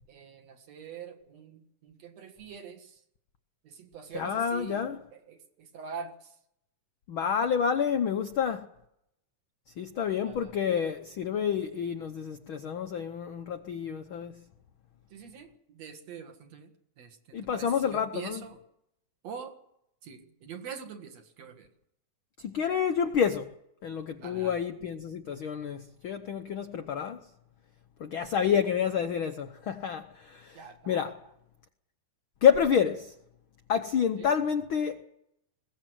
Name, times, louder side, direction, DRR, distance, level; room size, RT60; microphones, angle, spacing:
voice 1, 0.1-3.0 3.6-6.4 10.1-10.5 15.1-18.6 19.2-19.6 20.0-21.7 24.2-24.6 30.5-31.1 34.2-34.4, right 6 dB, 60° right, 2.7 m, -44 dB
voice 2, 4.1-5.0 7.1-8.6 9.8-14.4 17.3-18.4 22.4-23.5 23.8-27.2 28.0-30.6 30.9-31.1 32.4-33.1 33.7-35.0, left 7 dB, 75° left, 1.1 m, -28 dB
21.0 x 17.0 x 7.8 m
omnidirectional pair, 3.7 m